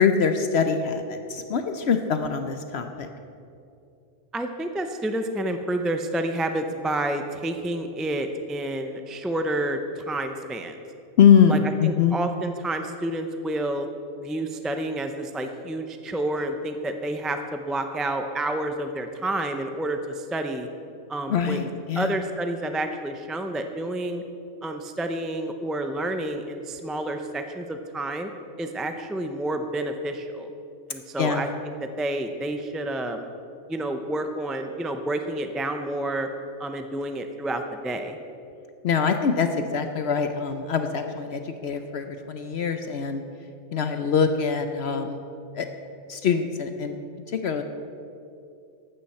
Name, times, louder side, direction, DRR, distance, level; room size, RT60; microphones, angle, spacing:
voice 1, 0.0-3.1 11.2-12.2 21.3-22.2 31.2-31.4 38.8-43.2 43.7-45.2 45.5-45.7 46.1-47.0 47.3-47.6, left 7 dB, 65° left, 7 dB, 0.9 m, -23 dB
voice 2, 4.3-10.8 11.5-11.6 11.8-13.9 14.2-20.7 21.1-21.7 22.0-24.2 24.6-28.3 28.6-30.5 30.9-31.5 32.0-33.3 33.7-36.3 36.6-38.2, right 1 dB, ahead, 6 dB, 0.4 m, -29 dB
14.5 x 12.0 x 4.3 m, 2.6 s
omnidirectional pair, 1.3 m